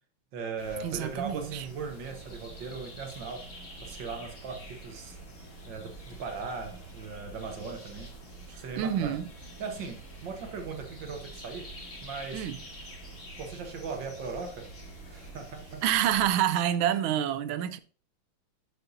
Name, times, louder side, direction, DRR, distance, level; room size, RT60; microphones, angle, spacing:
voice 1, 0.3-3.5 3.8-5.2 5.7-8.1 8.5-9.2 9.6-11.7 12.0-12.5 13.4-14.7 15.1-15.8, right 5 dB, 65° right, 1.8 m, -38 dB
sound 1, 0.6-16.3, right 1 dB, 35° left, 2.4 m, -46 dB
voice 2, 0.8-1.7 8.8-9.3 12.3-12.6 15.8-17.8, right 10 dB, 80° right, 1.4 m, -27 dB
8.8 x 6.9 x 2.7 m
omnidirectional pair, 2.3 m